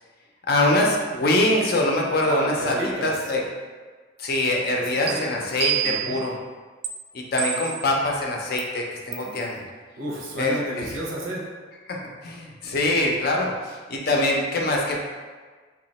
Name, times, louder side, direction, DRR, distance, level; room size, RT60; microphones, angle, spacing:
voice 1, 0.5-3.4 4.2-6.4 7.1-9.6 10.4-10.9 11.9-12.0 12.2-15.0, left 1 dB, 50° left, 0 dB, 0.5 m, -24 dB
voice 2, 2.2-3.2 4.7-5.5 5.8-6.2 9.2-9.5 10.0-11.5, right 1 dB, 90° right, -2 dB, 0.8 m, -32 dB
sound 1, 5.1-5.2 5.6-6.2 6.8-6.9 7.4-7.9 8.6-8.7 9.1-9.3, right 14 dB, 55° right, 0.3 m, -27 dB
2.8 x 2.4 x 4.1 m, 1.4 s
head